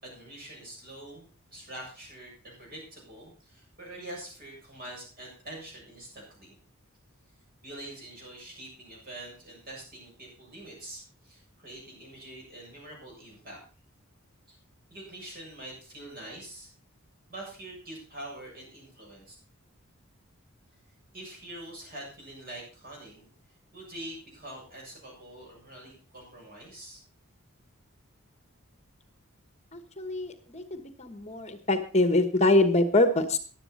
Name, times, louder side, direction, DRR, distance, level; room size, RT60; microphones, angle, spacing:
voice 1, 0.0-6.6 7.6-13.6 14.5-14.6 14.9-16.7 17.3-19.3 21.1-23.3 23.7-27.0, right 1 dB, 45° right, -2 dB, 7.4 m, -45 dB
voice 2, 29.7-33.4, left 2 dB, 30° left, 9 dB, 1.2 m, -24 dB
15.0 x 11.0 x 4.2 m, 0.37 s
head